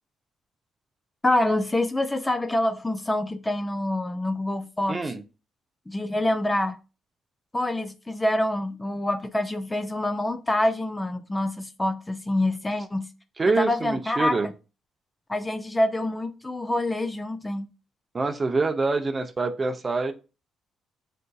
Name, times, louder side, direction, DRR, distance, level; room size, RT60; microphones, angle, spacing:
voice 1, 1.2-5.0 5.9-6.8 7.5-13.1 13.6-14.5 15.3-17.7, left 1 dB, 15° left, 0.4 m, -26 dB
voice 2, 4.9-5.2 13.4-14.5 18.1-20.1, right 3 dB, 30° right, 0.6 m, -25 dB
7.5 x 2.6 x 2.3 m
cardioid pair, 90°, 0 cm